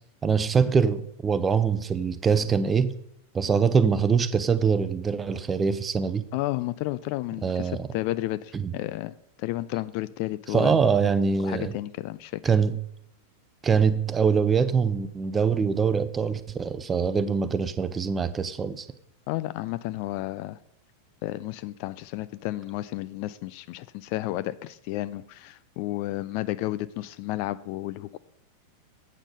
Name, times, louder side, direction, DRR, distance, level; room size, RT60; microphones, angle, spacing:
voice 1, 0.2-2.9 3.3-6.2 7.4-7.9 8.5-8.7 10.5-11.7 12.4-12.8 13.6-18.9, right 6 dB, 20° right, 0.7 m, -23 dB
voice 2, 6.3-10.7 11.4-12.4 19.3-20.6 21.2-28.2, left 16 dB, 45° left, 0.3 m, -32 dB
8.6 x 7.1 x 5.3 m
figure-of-eight pair, 90°, 0 cm